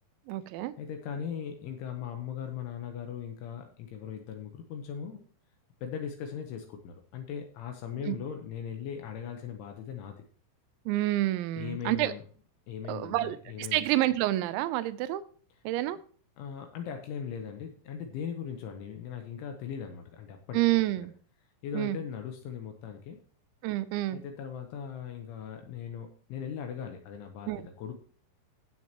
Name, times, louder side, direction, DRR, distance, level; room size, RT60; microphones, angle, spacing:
voice 1, 0.3-0.7 8.0-8.2 10.9-12.1 12.9-15.2 15.6-16.0 20.5-21.1 21.7-22.0 23.6-24.2 27.5-27.7, right 16 dB, 85° right, 13 dB, 2.7 m, -28 dB
voice 2, 0.8-5.2 5.8-10.2 11.6-12.2 12.7-13.8 16.4-20.6 21.0-21.1 21.6-23.2 24.1-27.5 27.8-27.9, left 7 dB, 75° left, 4 dB, 3.2 m, -39 dB
16.0 x 7.8 x 3.0 m, 0.43 s
omnidirectional pair, 5.9 m